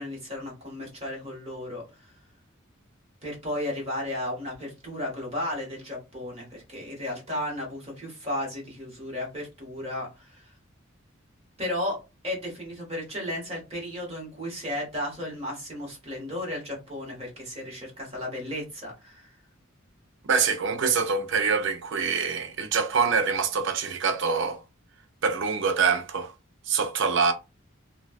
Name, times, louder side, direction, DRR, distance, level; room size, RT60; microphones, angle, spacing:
voice 1, 0.0-2.1 3.2-10.5 11.6-12.0 12.2-19.3, left 1 dB, 30° right, 1.2 m, -34 dB
voice 2, 20.3-24.6 25.2-26.3 26.7-27.3, right 5 dB, 65° right, 0.5 m, -25 dB
4.0 x 2.2 x 2.4 m
head